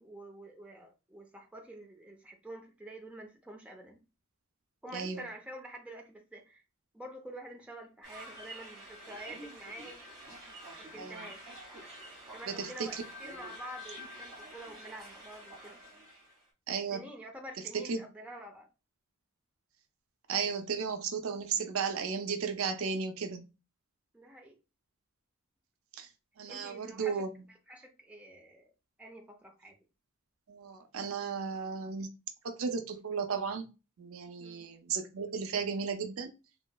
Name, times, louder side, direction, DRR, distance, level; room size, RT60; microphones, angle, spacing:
voice 1, 0.0-4.0 4.8-6.6 6.9-10.1 10.8-11.5 12.3-15.8 16.9-18.7 24.1-24.6 26.5-28.7 29.0-29.7 34.4-34.7, right 1 dB, 5° right, 0.5 m, -48 dB
voice 2, 4.9-5.2 11.0-11.2 12.5-12.9 16.7-17.0 17.7-18.0 20.3-23.5 26.0-26.1 26.4-27.3 30.5-32.1 32.4-33.7 34.0-36.3, right 5 dB, 80° right, 0.5 m, -34 dB
sound 1, 8.0-16.4, equal, 25° right, 1.8 m, -48 dB
3.0 x 2.8 x 2.2 m
head